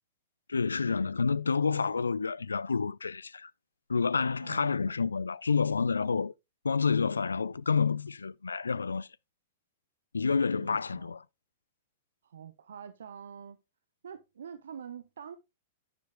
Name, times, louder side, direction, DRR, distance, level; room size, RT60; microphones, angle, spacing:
voice 1, 0.5-3.5 3.9-6.3 6.6-9.1 10.1-11.2, left 5 dB, 75° left, 0.4 m, -29 dB
voice 2, 10.5-11.1 12.2-13.6 14.0-15.4, right 8 dB, 65° right, 0.8 m, -46 dB
10.5 x 9.5 x 2.2 m
figure-of-eight pair, 100°, 0 cm